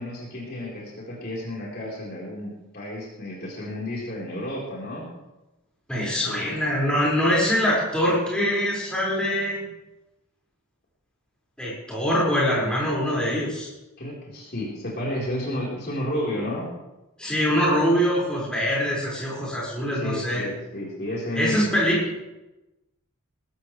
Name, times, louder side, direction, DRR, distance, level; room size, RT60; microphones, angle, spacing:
voice 1, 0.0-5.1 6.3-6.4 14.0-16.7 19.9-21.8, left 1 dB, 45° left, -5 dB, 4.3 m, -32 dB
voice 2, 5.9-9.6 11.6-13.7 17.2-20.5 21.3-22.2, equal, 5° left, -7 dB, 5.5 m, -23 dB
20.5 x 13.5 x 3.4 m, 1.0 s
head